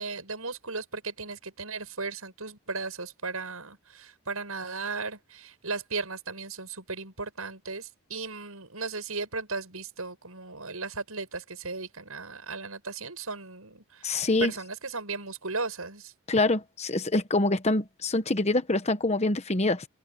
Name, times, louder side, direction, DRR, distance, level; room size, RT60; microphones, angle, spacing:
voice 1, 0.0-16.1, right 4 dB, 80° right, 7.3 m, -36 dB
voice 2, 14.0-14.5 16.3-19.9, left 2 dB, 30° left, 1.1 m, -25 dB
open air
head